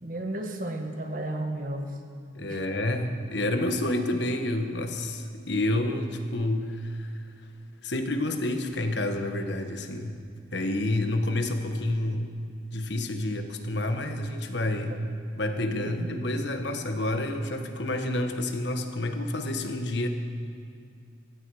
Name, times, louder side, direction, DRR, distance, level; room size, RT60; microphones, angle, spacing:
voice 1, 0.0-2.0 2.5-2.6 14.9-15.0 15.8-16.1, right 1 dB, 45° right, 4 dB, 1.4 m, -33 dB
voice 2, 2.3-7.1 7.8-10.2 10.5-12.3 12.7-15.0 15.4-20.1, left 1 dB, 65° left, 6 dB, 1.3 m, -29 dB
17.5 x 15.5 x 4.9 m, 2.3 s
head